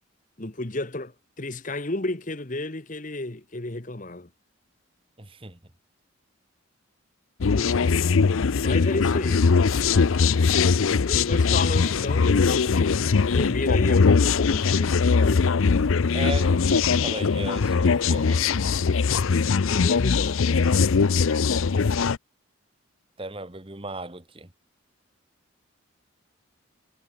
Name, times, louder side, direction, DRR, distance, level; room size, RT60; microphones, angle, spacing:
voice 1, 0.4-4.3 7.4-7.9 8.6-9.5 10.9-13.0 13.3-15.5 19.6-20.4, left 2 dB, 40° left, 1.3 m, -32 dB
voice 2, 5.2-5.6 16.1-18.4 23.2-24.5, right 2 dB, 25° right, 1.6 m, -36 dB
sound 1, 7.4-22.2, left 5 dB, 80° left, 0.6 m, -21 dB
head